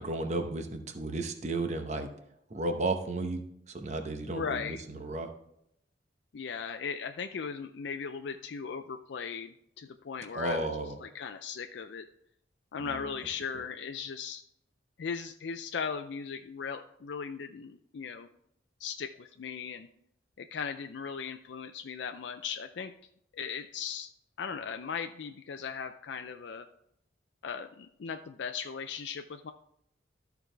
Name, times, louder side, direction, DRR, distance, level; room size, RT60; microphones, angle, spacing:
voice 1, 0.0-2.1 2.5-5.3 10.3-11.0 12.8-13.1, right 2 dB, 40° right, 5 dB, 0.8 m, -33 dB
voice 2, 4.4-4.8 6.3-10.7 11.0-12.1 12.7-14.4 15.0-18.3 18.8-19.9 20.4-22.9 23.3-24.1 24.4-26.7 27.4-29.5, left 6 dB, 75° left, 6 dB, 0.4 m, -38 dB
13.5 x 4.7 x 3.3 m, 0.74 s
head